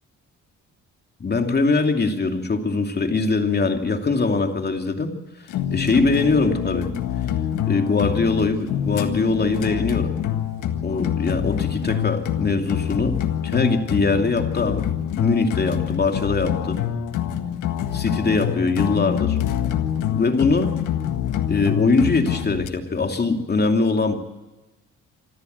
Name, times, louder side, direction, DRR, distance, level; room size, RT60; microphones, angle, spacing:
voice 1, 1.2-5.1 5.7-6.9 7.7-10.1 10.8-13.2 13.4-14.9 15.2-16.8 17.9-19.4 20.1-20.7 21.5-24.1, left 3 dB, 35° left, 5 dB, 2.8 m, -22 dB
sound 1, 5.5-22.7, left 10 dB, 85° left, 1.7 m, -26 dB
26.0 x 14.0 x 8.1 m, 1.1 s
cardioid pair, 90°, 30 cm